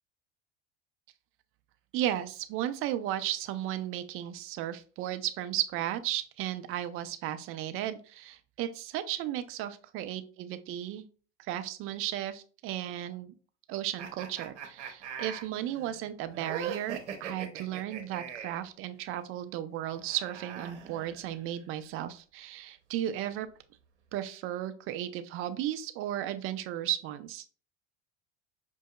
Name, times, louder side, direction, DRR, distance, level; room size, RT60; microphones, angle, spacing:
voice 1, 1.9-11.1 11.4-13.3 13.7-23.5 24.1-27.5, right 12 dB, 40° right, 10 dB, 0.4 m, -35 dB
sound 1, 14.0-18.7 19.9-21.6, right 7 dB, 80° right, 0.8 m, -41 dB
5.2 x 2.6 x 2.2 m, 0.39 s
hypercardioid pair, 80°, 34 cm